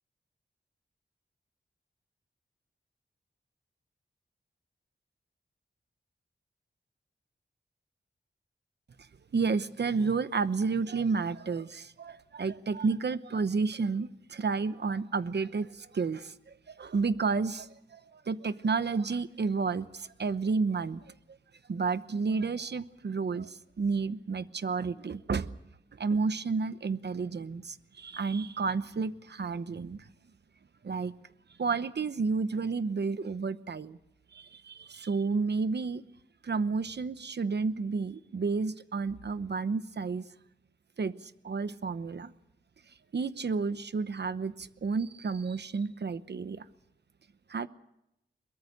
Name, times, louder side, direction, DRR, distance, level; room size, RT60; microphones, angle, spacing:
voice 1, 9.3-16.3 16.7-21.1 21.7-25.5 25.9-30.0 30.8-31.1 31.6-34.0 34.3-36.0 36.4-40.3 41.0-42.3 43.1-46.6 47.5-47.7, right 4 dB, 60° right, 13 dB, 1.0 m, -31 dB
22.5 x 22.5 x 6.7 m, 0.84 s
wide cardioid pair, 105°, 20 cm